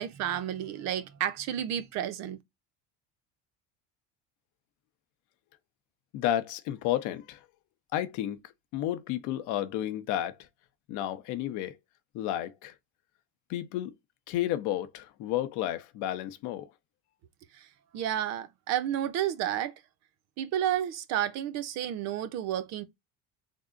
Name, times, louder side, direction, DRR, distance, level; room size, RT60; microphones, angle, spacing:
voice 1, 0.0-2.4 17.5-17.7 17.9-19.7 20.4-22.8, right 11 dB, 55° right, 0.6 m, -31 dB
voice 2, 6.1-7.4 7.9-8.4 8.7-10.5 10.9-11.8 12.1-12.7 13.5-14.0 14.3-16.7, left 12 dB, 65° left, 0.7 m, -31 dB
3.5 x 2.0 x 3.6 m
cardioid pair, 145°, 32 cm